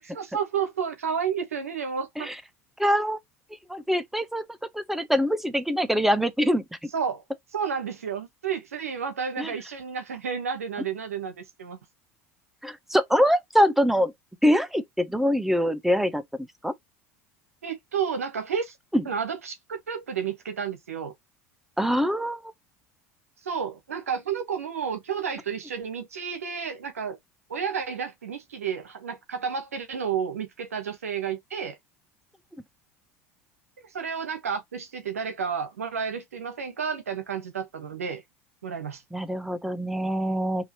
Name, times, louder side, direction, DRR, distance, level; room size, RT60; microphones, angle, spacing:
voice 1, 0.0-2.3 6.9-7.2 7.5-11.8 17.6-18.7 19.0-21.1 23.4-27.2 27.5-31.8 33.9-38.2 38.6-39.0, right 7 dB, 85° right, 1.1 m, -31 dB
voice 2, 2.8-3.2 3.7-4.4 4.7-6.9 9.4-9.5 12.6-14.1 14.4-16.2 16.6-16.7 18.9-19.0 21.8-22.4 39.1-40.7, equal, 5° right, 0.8 m, -24 dB
4.8 x 2.8 x 2.9 m
hypercardioid pair, 75°, 8 cm